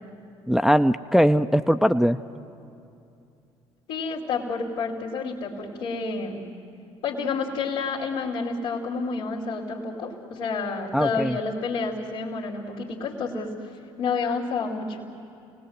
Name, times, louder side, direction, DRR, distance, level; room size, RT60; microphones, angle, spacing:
voice 1, 0.5-2.2 10.9-11.4, equal, ahead, 9 dB, 0.6 m, -20 dB
voice 2, 3.9-6.5 7.0-15.0, left 4 dB, 80° left, -6 dB, 2.7 m, -29 dB
29.5 x 19.0 x 7.9 m, 2.7 s
hypercardioid pair, 55°, 15 cm